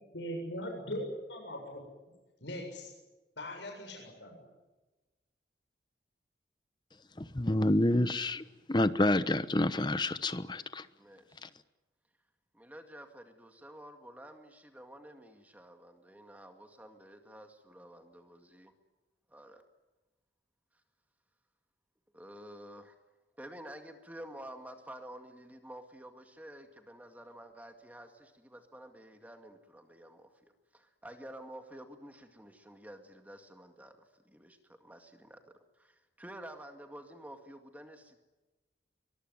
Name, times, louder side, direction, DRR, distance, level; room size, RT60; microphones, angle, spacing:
voice 1, 0.1-1.8 2.4-2.9 3.4-4.4, equal, 90° left, 1 dB, 7.5 m, -40 dB
voice 2, 7.2-10.9 11.4-11.5, left 1 dB, 25° left, 13 dB, 1.0 m, -28 dB
voice 3, 11.0-11.5 12.5-18.7 19.3-19.6 22.1-23.0 23.4-38.2, right 1 dB, 10° right, 5 dB, 2.0 m, -50 dB
23.5 x 22.0 x 9.4 m, 1.1 s
head